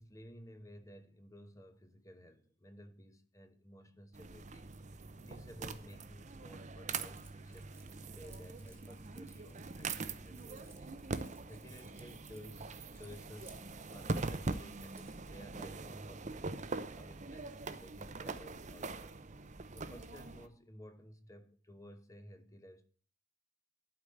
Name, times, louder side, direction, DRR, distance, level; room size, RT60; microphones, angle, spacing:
voice 1, 0.0-22.9, equal, 15° left, 1.0 m, -55 dB
sound 1, 4.1-20.5, right 3 dB, 35° right, 0.7 m, -43 dB
Keys jangling, 7.1-15.3, right 4 dB, 10° right, 1.5 m, -63 dB
12.0 x 5.0 x 7.9 m
head